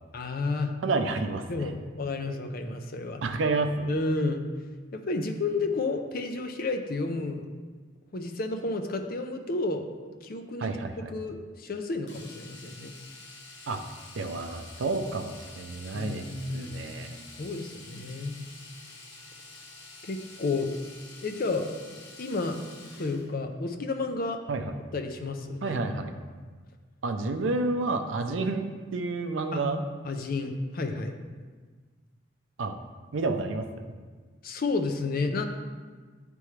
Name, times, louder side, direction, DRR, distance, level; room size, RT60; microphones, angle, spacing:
voice 1, 0.1-0.7 1.5-3.2 3.9-4.4 4.9-7.5 8.1-9.9 10.2-10.7 11.1-12.9 15.9-16.9 17.4-18.4 20.0-20.8 21.2-21.7 22.2-22.6 23.0-24.4 24.9-25.8 29.5-29.6 30.0-31.2 34.4-35.5, left 3 dB, 50° left, 5 dB, 0.5 m, -31 dB
voice 2, 0.8-1.7 3.2-3.9 10.6-11.1 13.7-13.8 14.2-17.2 24.5-24.6 25.6-26.1 27.0-29.8 32.6-32.7 33.1-33.7, right 3 dB, 75° right, 7 dB, 0.5 m, -30 dB
Domestic sounds home sounds, 12.1-23.3 25.4-25.6 25.9-26.0, left 3 dB, 70° left, 0.9 m, -48 dB
9.5 x 3.4 x 3.2 m, 1.5 s
head